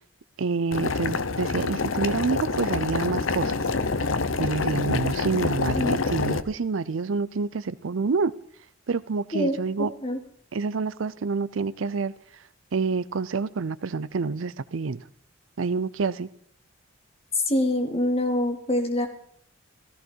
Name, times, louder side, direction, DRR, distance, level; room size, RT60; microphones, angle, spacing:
voice 1, 0.4-3.6 4.4-8.3 8.9-9.9 10.5-12.1 12.7-15.0 15.6-16.3, right 4 dB, 75° right, 0.6 m, -27 dB
Boiling, 0.7-6.4, left 4 dB, 80° left, 0.9 m, -27 dB
voice 2, 17.3-19.1, left 1 dB, 30° left, 2.8 m, -24 dB
16.0 x 15.5 x 4.5 m
head